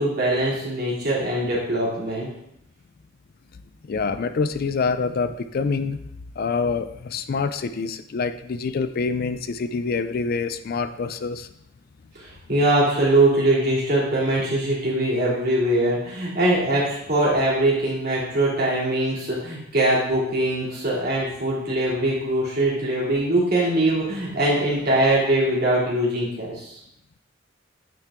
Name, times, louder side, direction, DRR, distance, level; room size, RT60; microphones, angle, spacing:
voice 1, 0.0-2.3 12.2-26.7, right 1 dB, 50° right, -6 dB, 2.8 m, -22 dB
voice 2, 3.9-6.0 6.4-11.5, left 4 dB, 50° left, 11 dB, 0.4 m, -26 dB
8.9 x 4.6 x 3.7 m, 0.77 s
head